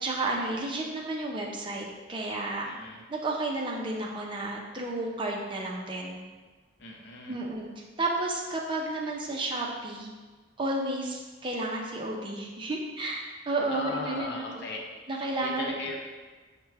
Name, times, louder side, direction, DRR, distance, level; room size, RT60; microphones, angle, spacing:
voice 1, 0.0-2.7 3.1-6.2 7.3-7.7 8.0-10.1 10.6-14.7 15.1-15.8, right 2 dB, 25° right, -1 dB, 0.5 m, -32 dB
voice 2, 2.6-3.0 6.8-7.4 13.7-14.8 15.4-16.0, left 2 dB, 60° left, 0 dB, 0.6 m, -37 dB
5.7 x 2.2 x 3.3 m, 1.3 s
head